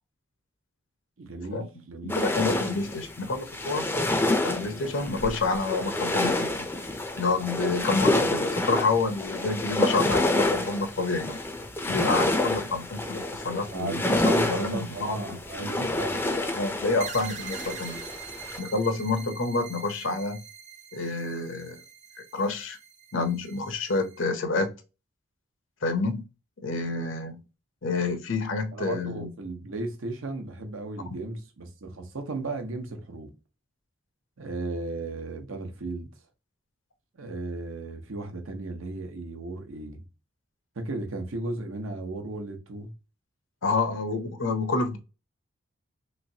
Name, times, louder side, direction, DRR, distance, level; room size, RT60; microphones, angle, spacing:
voice 1, 1.2-2.2 13.7-16.3 28.7-33.3 34.4-36.1 37.1-40.0 40.8-42.9, right 2 dB, 85° right, 0.8 m, -35 dB
voice 2, 2.0-3.9 4.4-6.6 7.2-11.4 11.9-15.9 16.5-18.0 18.6-20.4 20.9-21.8 22.3-22.8 23.1-24.7 25.8-26.2 26.6-27.4 27.8-29.3 43.6-45.0, left 3 dB, 70° left, 0.7 m, -28 dB
sound 1, 2.1-18.6, left 2 dB, 10° left, 0.4 m, -28 dB
sound 2, 17.0-24.2, right 6 dB, 35° right, 0.6 m, -43 dB
3.1 x 3.1 x 2.7 m
head